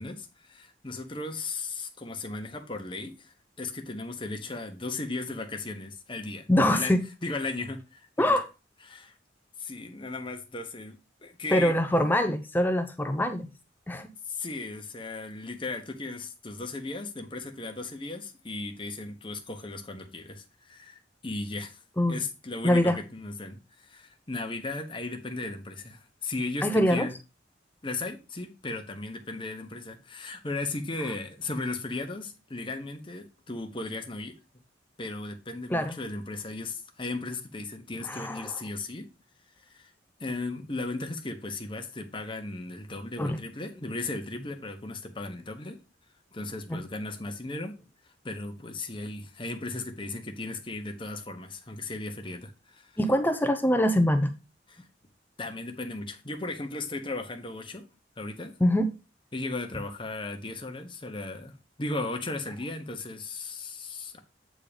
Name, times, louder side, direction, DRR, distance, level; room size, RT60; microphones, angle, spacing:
voice 1, 0.0-6.5 6.7-6.9 7.2-8.4 8.9-9.1 9.6-11.7 14.3-21.8 22.1-27.1 27.8-34.3 35.0-39.1 39.7-39.9 40.2-45.8 46.3-47.7 48.2-52.9 54.7-54.8 55.4-57.8 58.2-58.5 59.3-64.2, left 2 dB, 30° left, 1.2 m, -36 dB
voice 2, 6.5-7.0 8.2-8.5 11.5-13.5 13.9-14.1 22.0-22.2 22.6-23.0 26.6-27.1 35.7-35.9 38.0-38.6 43.2-43.4 46.7-46.8 53.0-54.3 58.6-58.9, left 1 dB, 10° left, 0.6 m, -24 dB
8.7 x 3.8 x 5.1 m
head